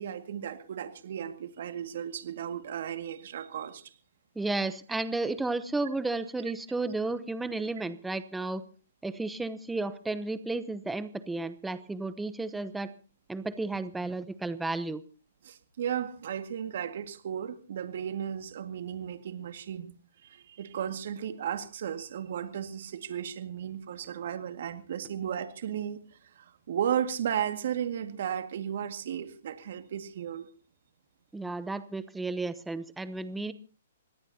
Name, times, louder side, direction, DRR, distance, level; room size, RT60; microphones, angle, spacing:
voice 1, 0.0-3.9 15.4-19.9 20.2-26.0 26.4-30.5, right 9 dB, 60° right, 8 dB, 2.0 m, -35 dB
voice 2, 4.3-8.6 9.0-12.9 13.3-15.0 31.3-33.5, right 3 dB, 5° right, 13 dB, 0.9 m, -33 dB
25.0 x 18.0 x 2.9 m, 0.37 s
hypercardioid pair, 135°, 0 cm